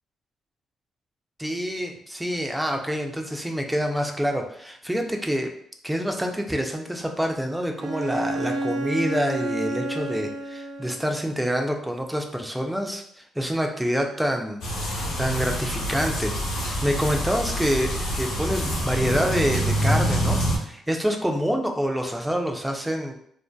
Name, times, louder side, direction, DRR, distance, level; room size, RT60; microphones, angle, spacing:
voice 1, 1.4-5.5 5.8-14.6 15.2-16.4 16.6-23.1, equal, 5° right, 3 dB, 0.4 m, -27 dB
Bowed string instrument, 7.8-11.3, right 1 dB, 80° right, 0.3 m, -30 dB
sound 1, 14.6-20.6, equal, 80° left, 0.8 m, -26 dB
2.5 x 2.3 x 2.2 m, 0.66 s
cardioid pair, 90°, 0 cm